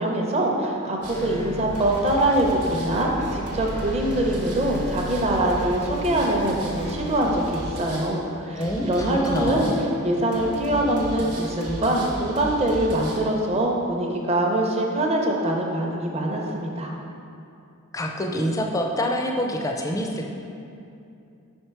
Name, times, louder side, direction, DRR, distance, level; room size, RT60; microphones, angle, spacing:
voice 1, 0.0-9.7 10.0-16.9, right 1 dB, 30° right, 0 dB, 0.6 m, -23 dB
sound 1, 1.0-13.2, equal, 85° right, 1.0 m, -34 dB
voice 2, 8.6-9.9 17.9-20.3, equal, 15° left, 1 dB, 0.4 m, -26 dB
5.4 x 4.4 x 4.5 m, 2.6 s
head